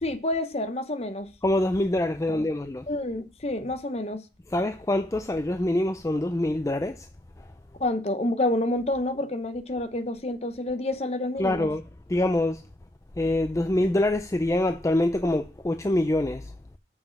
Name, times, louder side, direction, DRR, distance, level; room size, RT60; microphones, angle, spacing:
voice 1, 0.0-1.3 2.3-2.4 2.9-4.2 7.8-11.7, left 1 dB, 35° left, 0.9 m, -28 dB
voice 2, 1.4-2.9 4.5-7.1 11.4-11.8 12.1-12.6 13.2-16.5, left 1 dB, 20° left, 0.4 m, -25 dB
7.3 x 5.4 x 5.8 m
head